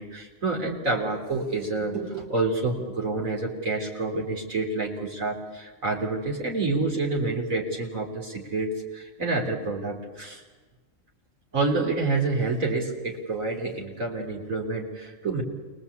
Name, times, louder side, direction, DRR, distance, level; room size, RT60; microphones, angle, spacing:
voice 1, 0.0-10.4 11.5-15.4, right 3 dB, 90° right, -1 dB, 4.0 m, -28 dB
29.0 x 23.0 x 8.4 m, 1.3 s
omnidirectional pair, 1.4 m